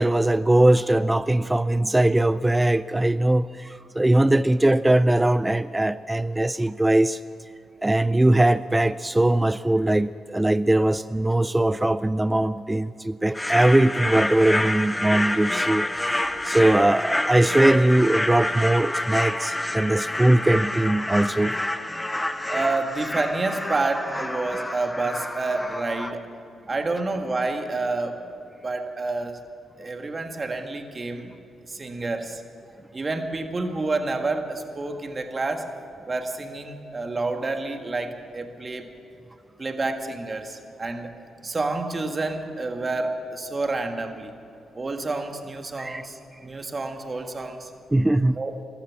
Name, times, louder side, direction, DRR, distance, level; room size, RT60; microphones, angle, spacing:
voice 1, 0.0-7.2 7.8-21.5 45.8-46.0 47.9-48.4, right 1 dB, 15° right, 15 dB, 0.3 m, -21 dB
sound 1, 13.3-26.1, left 1 dB, 15° left, 1.0 m, -28 dB
voice 2, 22.5-26.2 26.7-28.2 28.6-29.4 29.8-31.3 31.6-32.4 32.9-35.7 36.1-38.9 39.6-41.1 41.4-44.3 44.7-47.7 48.4-48.5, right 3 dB, 35° right, 5 dB, 1.7 m, -29 dB
15.0 x 13.0 x 7.4 m, 2.7 s
supercardioid pair, 55°, 0 cm